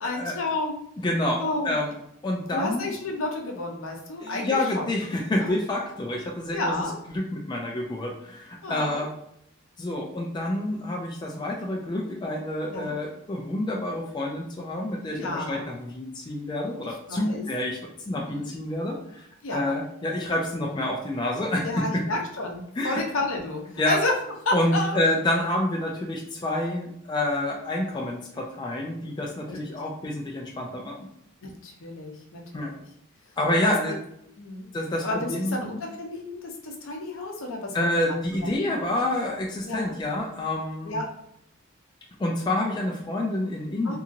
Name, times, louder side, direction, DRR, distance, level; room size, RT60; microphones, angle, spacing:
voice 1, 0.0-0.8 1.4-1.8 2.5-4.8 5.4-5.5 6.5-6.9 8.6-9.1 12.7-12.9 15.1-15.7 17.1-17.4 18.1-18.5 19.4-19.7 21.6-24.1 24.5-25.0 29.5-29.8 31.4-32.8 33.6-33.7 34.4-34.7 35.0-38.5 39.7-40.0 40.8-41.1 43.8-44.0, left 2 dB, 75° left, 1 dB, 0.6 m, -31 dB
voice 2, 1.0-1.9 2.2-2.9 4.2-6.7 7.1-9.1 9.8-17.8 18.1-19.3 19.5-22.0 22.8-23.0 23.8-24.0 24.5-31.1 32.5-32.7 33.4-33.9 34.7-35.7 37.7-41.0 42.2-44.0, left 1 dB, 20° left, -1 dB, 0.3 m, -28 dB
2.8 x 2.6 x 2.5 m, 0.75 s
head